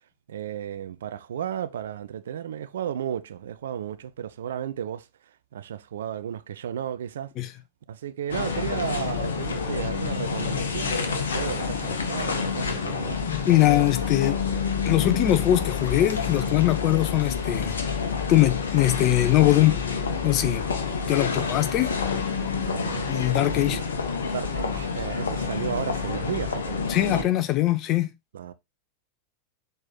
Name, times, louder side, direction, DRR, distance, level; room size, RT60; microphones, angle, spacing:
voice 1, 0.3-5.1 5.5-7.3 7.9-13.2 21.0-21.4 22.6-23.8 24.2-27.3 28.3-28.5, right 9 dB, 60° right, 0.5 m, -34 dB
sound 1, 8.3-27.2, left 5 dB, 65° left, 1.2 m, -28 dB
voice 2, 13.3-14.4 14.8-17.8 18.3-19.7 20.2-20.6 21.1-21.9 23.1-23.8 26.9-28.1, left 15 dB, 35° left, 0.9 m, -22 dB
6.6 x 4.3 x 3.8 m
figure-of-eight pair, 90°, 0 cm